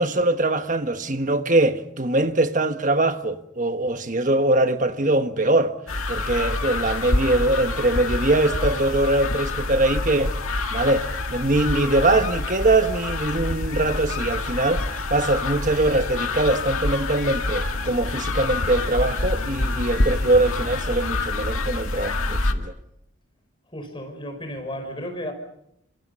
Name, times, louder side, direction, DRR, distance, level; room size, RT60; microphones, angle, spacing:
voice 1, 0.0-5.8 6.1-10.4 10.7-14.8 15.1-22.7, right 2 dB, 40° right, 1.4 m, -22 dB
sound 1, 5.9-22.5, left 2 dB, 85° left, 2.0 m, -27 dB
voice 2, 23.7-25.3, equal, 25° left, 5.7 m, -33 dB
26.5 x 26.0 x 5.6 m
head